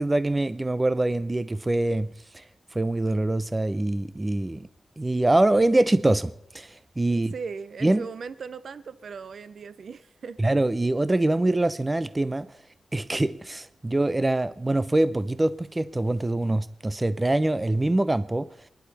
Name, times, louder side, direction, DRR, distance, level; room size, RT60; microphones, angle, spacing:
voice 1, 0.0-2.1 2.3-2.4 2.7-4.6 5.0-6.7 7.0-7.3 7.8-8.1 10.4-12.5 12.9-18.5, right 2 dB, 20° right, 0.6 m, -24 dB
voice 2, 7.1-10.4, right 5 dB, 70° right, 0.6 m, -38 dB
25.0 x 10.5 x 4.2 m
wide cardioid pair, 120°, 0 cm